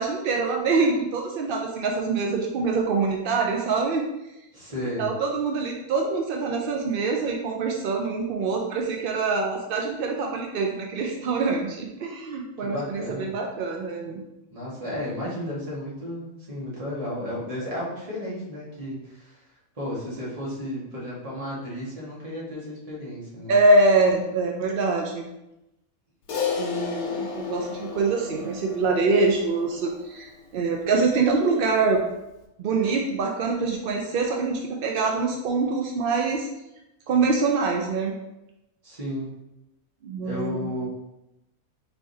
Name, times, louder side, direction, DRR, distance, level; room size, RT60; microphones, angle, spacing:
voice 1, 0.0-4.1 5.0-14.2 23.5-25.3 26.6-32.1 32.6-36.5 37.1-38.1 40.0-40.7, right 3 dB, 75° right, 1 dB, 0.5 m, -24 dB
voice 2, 4.5-5.1 12.6-13.3 14.5-19.4 19.7-23.5 38.8-39.3 40.2-40.9, left 1 dB, 25° right, -6 dB, 1.3 m, -33 dB
Crash cymbal, 26.3-30.9, left 6 dB, 85° left, 1.2 m, -33 dB
4.5 x 3.4 x 2.6 m, 0.90 s
omnidirectional pair, 1.5 m